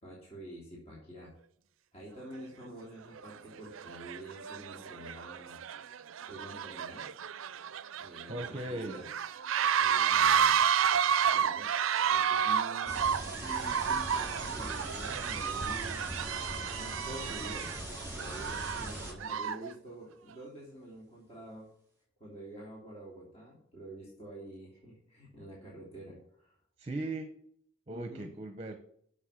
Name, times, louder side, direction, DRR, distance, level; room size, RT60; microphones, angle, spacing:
voice 1, 0.0-1.3 1.9-5.6 6.3-7.1 8.0-9.1 9.8-10.7 11.2-11.8 12.1-16.1 16.8-17.7 18.1-21.7 22.2-26.5 27.9-28.3, right 1 dB, 30° left, -5 dB, 2.9 m, -47 dB
sound 1, 2.3-2.4 3.2-3.4 3.7-19.7, right 8 dB, 75° right, 0.5 m, -31 dB
voice 2, 8.3-9.0 26.8-27.3 27.9-28.8, right 2 dB, 30° right, 6 dB, 0.9 m, -38 dB
sound 2, 12.9-19.1, right 1 dB, 10° right, 4.0 m, -41 dB
7.9 x 6.7 x 7.2 m, 0.67 s
head